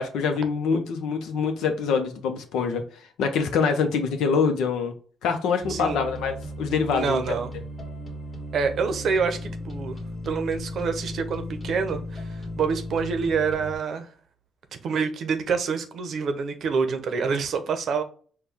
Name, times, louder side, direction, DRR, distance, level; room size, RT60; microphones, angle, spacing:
voice 1, 0.0-2.8 3.2-4.9 5.2-7.2, left 5 dB, 85° left, 0.7 m, -25 dB
sound 1, 5.6-13.8, left 1 dB, 30° left, 1.5 m, -36 dB
voice 2, 5.7-6.0 6.9-7.5 8.5-10.0 10.3-14.1 14.7-18.0, right 5 dB, 65° right, 0.7 m, -27 dB
4.4 x 2.2 x 3.4 m
cardioid pair, 90°, 0 cm